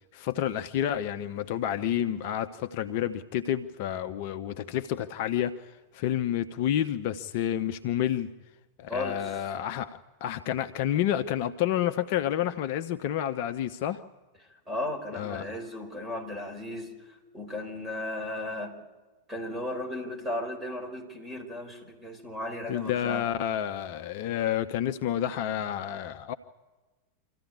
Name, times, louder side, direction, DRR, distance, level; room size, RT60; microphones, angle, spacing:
voice 1, 0.1-8.3 8.8-14.0 15.1-15.5 22.7-26.3, left 11 dB, 45° left, 0.7 m, -29 dB
voice 2, 8.9-9.5 14.7-18.8 19.3-23.3, left 1 dB, 10° right, 4.9 m, -35 dB
25.0 x 14.5 x 9.7 m
figure-of-eight pair, 90°, 0 cm